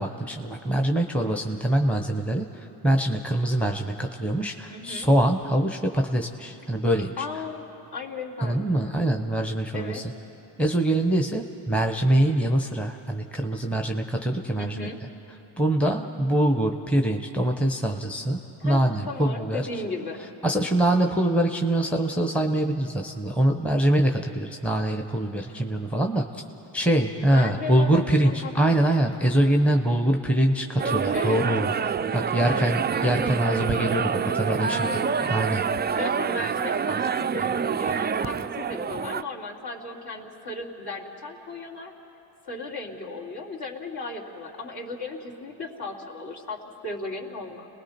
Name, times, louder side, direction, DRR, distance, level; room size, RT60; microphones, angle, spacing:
voice 1, 0.0-2.5 2.8-7.1 8.4-10.0 10.6-14.9 15.6-19.6 20.4-26.4 26.7-34.9 35.3-35.6, right 1 dB, 5° left, 3 dB, 1.1 m, -24 dB
voice 2, 4.7-5.1 7.2-7.7 7.9-8.9 9.7-10.0 14.6-15.0 15.8-16.1 18.6-20.2 25.5-25.6 27.1-29.0 31.1-31.4 32.5-32.8 34.6-35.0 35.8-41.9 42.4-47.7, left 3 dB, 50° left, -3 dB, 3.6 m, -36 dB
sound 1, 30.8-39.2, right 6 dB, 20° right, 0.4 m, -26 dB
30.0 x 20.0 x 4.5 m, 3.0 s
supercardioid pair, 60°, 50 cm